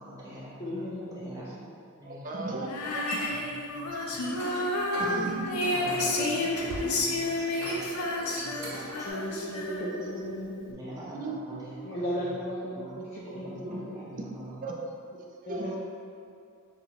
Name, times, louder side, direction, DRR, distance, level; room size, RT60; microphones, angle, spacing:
voice 1, 0.0-0.9 1.1-1.6 2.0-3.0 3.2-3.4 3.7-4.2 5.7-7.9 8.3-8.7 10.7-11.8 12.2-12.3 12.8-13.0 13.4-14.6, right 1 dB, 15° right, -8 dB, 0.9 m, -44 dB
voice 2, 0.6-1.5 6.0-6.4 9.0-10.7 11.8-14.0 15.4-15.8, equal, 35° left, -9 dB, 0.5 m, -36 dB
voice 3, 2.0-3.2 3.9-4.6 5.0-5.8 6.8-6.9 8.7-8.8 11.1-11.4 13.6-13.8 14.6-14.9 15.5-15.8, right 2 dB, 40° right, 0 dB, 0.5 m, -36 dB
Female singing, 2.7-10.1, left 2 dB, 90° left, 0.5 m, -30 dB
sound 1, 2.7-3.3 3.8-4.6 4.9-5.1 5.5-6.9 7.5-9.1, equal, 75° right, 1.2 m, -40 dB
5.6 x 2.4 x 2.9 m, 2.4 s
head